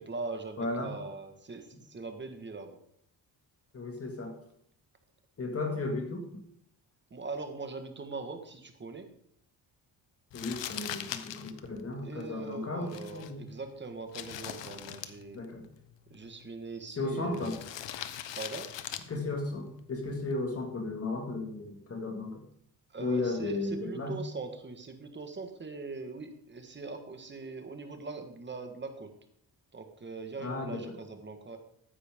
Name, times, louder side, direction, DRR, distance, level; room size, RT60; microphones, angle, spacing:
voice 1, 0.0-2.8 7.1-9.1 12.0-15.5 16.1-17.6 18.4-18.7 22.9-29.1 29.7-31.6, right 3 dB, 25° right, 6 dB, 1.5 m, -41 dB
voice 2, 0.6-1.0 3.7-4.4 5.4-6.4 10.3-13.5 15.3-15.7 17.0-17.6 19.1-22.4 23.0-24.2 30.4-30.9, left 2 dB, 30° left, 3 dB, 2.0 m, -35 dB
Crumpling crinkling, 10.3-20.5, left 11 dB, 75° left, 1.0 m, -43 dB
14.0 x 9.8 x 3.7 m, 0.67 s
cardioid pair, 135°, 44 cm